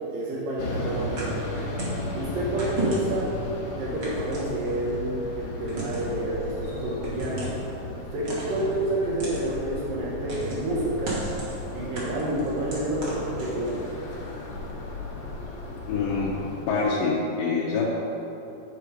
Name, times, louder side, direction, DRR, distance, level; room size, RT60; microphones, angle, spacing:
voice 1, 0.1-1.4 2.1-3.3 3.7-7.5 8.1-11.2 11.7-13.0 13.4-13.8, right 1 dB, 80° right, -6 dB, 2.7 m, -29 dB
sound 1, 0.6-16.7, left 2 dB, 70° left, 2.4 m, -35 dB
sound 2, 1.2-2.0 2.6-3.3 4.0-4.9 5.7-6.2 7.0-7.6 8.3-8.7 9.2-9.4 10.3-10.7 11.0-11.6 11.9-13.8, right 2 dB, 50° right, 1.9 m, -34 dB
voice 2, 15.9-16.3 16.7-17.8, left 4 dB, 90° left, -6 dB, 2.6 m, -25 dB
8.3 x 4.8 x 4.8 m, 2.9 s
omnidirectional pair, 3.9 m